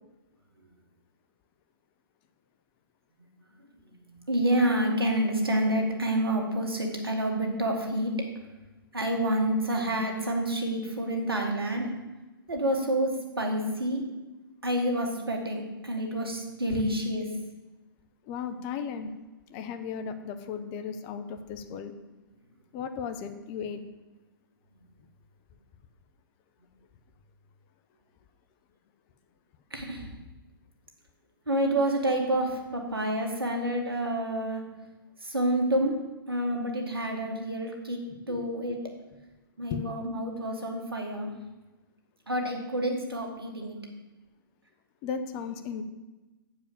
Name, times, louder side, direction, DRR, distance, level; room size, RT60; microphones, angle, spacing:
voice 1, 3.8-8.2 8.9-11.9 12.5-14.1 14.6-17.3 29.7-30.1 31.5-34.6 35.2-36.0 36.3-38.0 38.3-38.8 39.6-41.3 42.3-43.8, right 1 dB, 80° right, 2 dB, 1.8 m, -28 dB
voice 2, 18.2-19.1 19.5-21.9 22.7-23.8 38.1-38.5 39.7-39.8 45.0-45.8, left 6 dB, 30° left, 8 dB, 0.7 m, -35 dB
8.1 x 4.8 x 7.2 m, 1.1 s
figure-of-eight pair, 115°, 12 cm